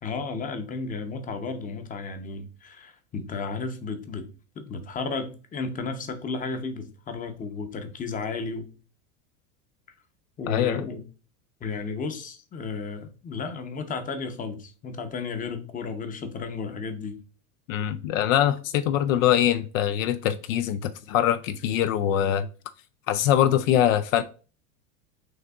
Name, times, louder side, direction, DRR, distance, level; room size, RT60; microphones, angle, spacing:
voice 1, 0.0-4.3 4.6-8.7 10.4-11.0 11.6-17.2, left 4 dB, 20° left, 0.7 m, -33 dB
voice 2, 10.5-10.9 17.7-22.5 23.1-24.2, left 11 dB, 70° left, 0.5 m, -23 dB
6.3 x 2.6 x 2.3 m
hypercardioid pair, 105°, 41 cm